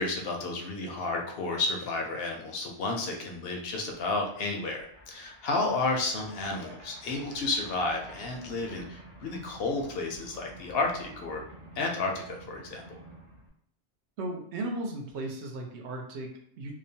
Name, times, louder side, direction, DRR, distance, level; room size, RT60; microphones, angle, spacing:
voice 1, 0.0-11.4 11.8-12.8, left 3 dB, 65° left, 2 dB, 0.7 m, -31 dB
sound 1, 2.6-13.5, right 1 dB, 40° right, 0.5 m, -51 dB
voice 2, 14.2-16.7, right 2 dB, 75° right, 2 dB, 0.9 m, -36 dB
2.8 x 2.1 x 2.7 m, 0.69 s
omnidirectional pair, 1.2 m